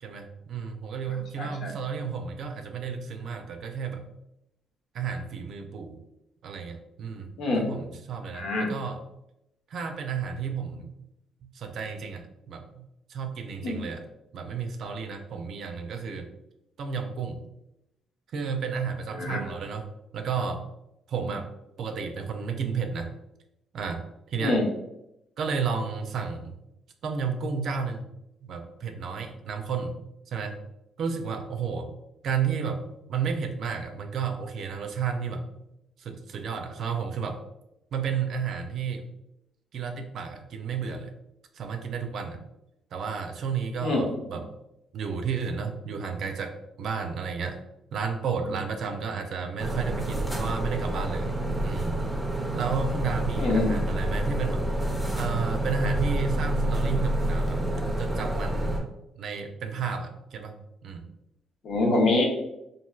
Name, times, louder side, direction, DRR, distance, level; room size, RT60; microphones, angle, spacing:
voice 1, 0.0-4.1 4.9-6.0 6.4-7.3 7.6-9.0 9.7-11.1 11.4-14.0 14.3-16.3 16.8-17.4 18.3-19.9 20.1-20.7 21.1-21.5 21.8-23.1 23.7-24.6 25.4-26.5 27.0-28.0 28.4-30.0 30.3-30.6 31.0-31.9 32.2-35.7 36.0-37.4 37.9-39.1 39.7-41.1 41.5-42.4 42.9-44.6 44.9-47.6 47.9-51.3 51.6-52.0 52.5-54.6 55.2-58.8 59.2-60.5 60.8-61.0, right 6 dB, 65° right, 6 dB, 0.4 m, -32 dB
voice 2, 1.4-1.7 7.4-7.7 8.3-8.7 13.6-13.8 19.1-19.4 24.4-24.6 43.8-44.1 53.4-53.9 61.6-62.2, left 2 dB, 70° left, 0 dB, 0.7 m, -25 dB
sound 1, 49.6-58.8, right 1 dB, 10° right, 0.6 m, -28 dB
3.1 x 2.5 x 2.2 m, 0.85 s
cardioid pair, 90°, 0 cm